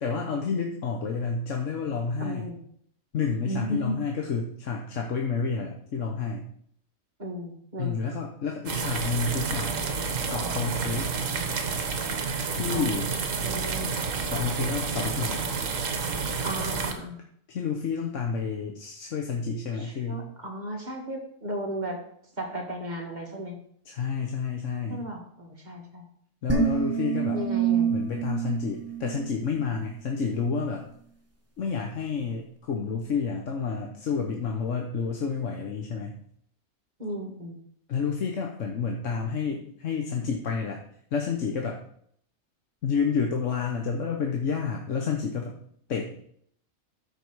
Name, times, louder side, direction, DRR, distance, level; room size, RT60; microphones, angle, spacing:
voice 1, 0.0-2.5 3.1-6.4 7.8-9.7 10.3-11.1 12.5-13.1 14.3-15.4 17.5-20.2 23.8-25.0 26.4-27.4 27.9-30.9 31.6-36.2 37.9-40.8 41.1-41.8 42.8-45.5 45.9-46.1, left 5 dB, 60° left, 1 dB, 1.3 m, -29 dB
voice 2, 2.2-2.6 3.5-4.0 7.2-8.0 12.7-13.9 16.4-17.2 19.8-22.0 22.4-23.6 24.9-26.0 27.3-27.9 37.0-37.6, equal, 30° right, 0 dB, 1.8 m, -35 dB
sound 1, 8.7-16.9, right 5 dB, 65° right, 1.5 m, -30 dB
sound 2, 26.5-29.8, right 7 dB, 10° right, 1.4 m, -27 dB
13.0 x 5.1 x 4.7 m, 0.64 s
omnidirectional pair, 1.5 m